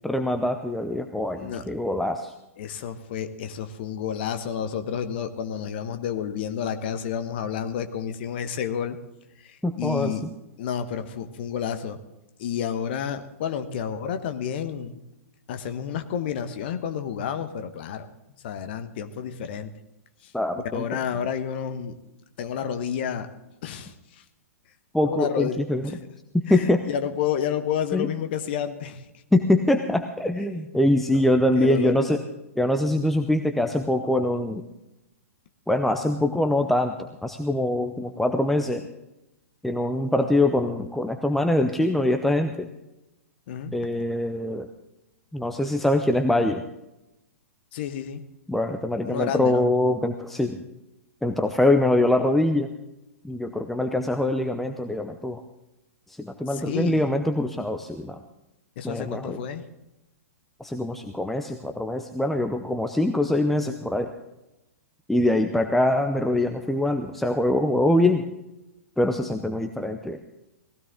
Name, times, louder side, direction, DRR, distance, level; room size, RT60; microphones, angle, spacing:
voice 1, 0.0-2.3 9.6-10.1 20.3-21.0 24.9-25.9 26.3-26.9 27.9-28.1 29.3-32.2 32.6-34.6 35.7-38.8 39.6-42.7 43.7-44.7 45.3-46.6 48.5-50.6 51.2-52.7 53.2-55.4 56.1-58.2 58.8-59.4 60.6-64.1 65.1-68.3 69.0-70.2, left 1 dB, 5° left, 6 dB, 0.7 m, -23 dB
voice 2, 2.6-9.0 9.5-10.2 10.6-12.0 12.4-15.0 15.5-18.1 18.4-19.7 20.7-22.0 22.4-23.3 23.6-23.9 25.0-26.0 26.5-29.0 31.1-31.9 43.5-43.7 47.7-48.2 49.0-49.7 56.5-57.1 58.8-59.6, left 8 dB, 45° left, 9 dB, 1.2 m, -30 dB
18.5 x 16.0 x 3.8 m, 0.93 s
figure-of-eight pair, 110°, 8 cm